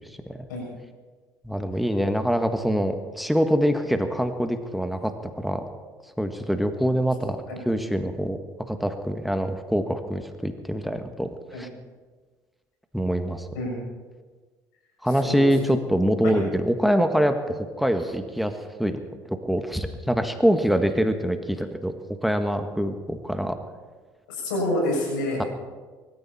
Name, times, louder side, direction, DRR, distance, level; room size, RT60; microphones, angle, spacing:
voice 1, 1.4-5.6 6.2-7.4 7.6-8.4 8.7-11.7 12.9-13.5 15.0-18.5 18.8-19.0 19.2-21.9 22.2-23.6 25.4-25.5, equal, ahead, 7 dB, 1.6 m, -24 dB
voice 2, 24.3-25.4, left 1 dB, 90° left, -2 dB, 6.9 m, -27 dB
23.5 x 14.0 x 4.3 m, 1.4 s
hypercardioid pair, 70°, 10 cm